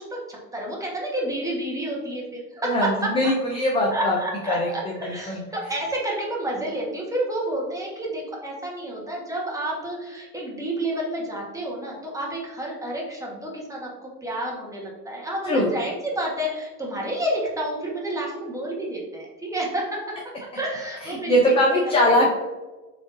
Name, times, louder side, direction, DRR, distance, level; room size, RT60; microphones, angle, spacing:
voice 1, 0.0-3.1 3.9-20.2 20.5-21.6 21.8-22.2, right 1 dB, 5° right, -3 dB, 1.1 m, -30 dB
voice 2, 2.6-4.2 4.5-4.7 5.0-5.4 15.4-15.7 21.0-22.3, left 1 dB, 15° left, -1 dB, 0.3 m, -21 dB
3.9 x 3.4 x 2.5 m, 1.2 s
hypercardioid pair, 95°, 49 cm